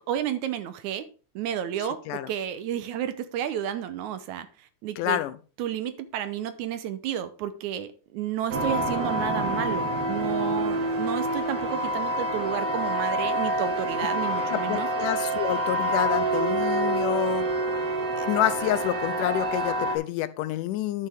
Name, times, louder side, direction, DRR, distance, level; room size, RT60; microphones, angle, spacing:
voice 1, 0.1-1.0 1.4-5.2 5.6-14.9, right 10 dB, 75° right, 2.0 m, -31 dB
voice 2, 5.0-5.3 14.5-17.5 18.2-21.1, left 14 dB, 90° left, 2.2 m, -28 dB
sound 1, 8.5-20.0, right 1 dB, 60° right, 2.1 m, -27 dB
11.5 x 6.5 x 3.5 m
omnidirectional pair, 3.6 m